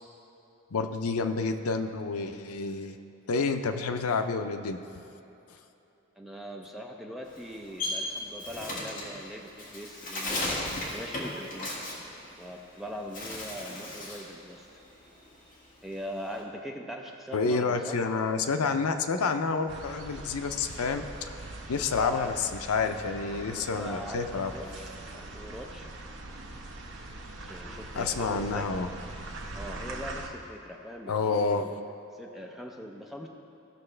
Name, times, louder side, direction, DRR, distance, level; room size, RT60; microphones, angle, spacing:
voice 1, 0.7-2.9 3.3-4.8 10.7-10.8 17.3-21.1 21.7-24.5 28.0-28.9 31.1-31.6, left 4 dB, 90° left, 8 dB, 0.5 m, -29 dB
voice 2, 6.2-11.7 12.4-14.7 15.8-18.0 21.7-22.3 23.4-25.9 27.4-28.7 29.5-31.7 32.1-33.3, equal, ahead, 0 dB, 0.6 m, -41 dB
Bird, 7.2-12.7 13.0-14.3 14.7-16.4, left 1 dB, 40° left, 1.8 m, -36 dB
sound 1, 19.7-30.3, right 2 dB, 60° right, 0.8 m, -42 dB
16.0 x 6.2 x 3.3 m, 3.0 s
head